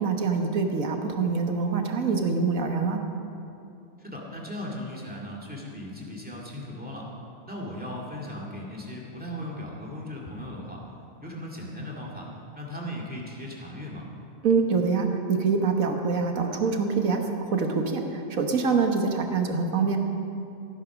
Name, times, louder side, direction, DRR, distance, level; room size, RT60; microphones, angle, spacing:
voice 1, 0.0-3.0 14.4-20.0, right 4 dB, 80° right, 4 dB, 1.6 m, -25 dB
voice 2, 4.0-7.1 7.5-10.8 11.2-12.3 12.5-14.0, left 1 dB, 5° right, -3 dB, 2.2 m, -37 dB
15.0 x 9.5 x 6.1 m, 2.7 s
omnidirectional pair, 1.4 m